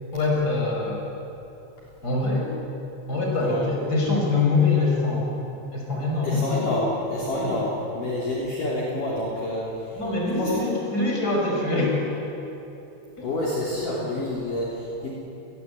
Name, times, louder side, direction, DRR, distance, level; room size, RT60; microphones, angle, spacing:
voice 1, 0.1-1.0 2.0-2.5 3.1-5.3 5.7-6.5 7.4-7.5 9.9-12.1 13.2-13.3, left 3 dB, 20° left, -1 dB, 6.2 m, -24 dB
voice 2, 6.2-10.0 10.4-10.7 13.2-15.1, left 1 dB, 50° left, -5 dB, 4.8 m, -28 dB
30.0 x 21.0 x 8.5 m, 3.0 s
omnidirectional pair, 5.2 m